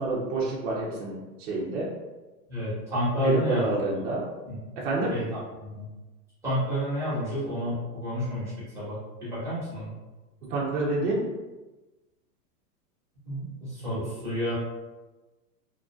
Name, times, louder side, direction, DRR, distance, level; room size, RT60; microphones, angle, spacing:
voice 1, 0.0-1.9 3.2-4.2 4.8-5.1 10.5-11.2, right 2 dB, 50° right, -4 dB, 0.7 m, -28 dB
voice 2, 2.5-4.0 4.5-4.6 5.1-5.8 6.4-9.9 13.2-14.5, equal, 5° right, -13 dB, 1.1 m, -30 dB
2.9 x 2.6 x 2.3 m, 1.1 s
supercardioid pair, 165°, 49 cm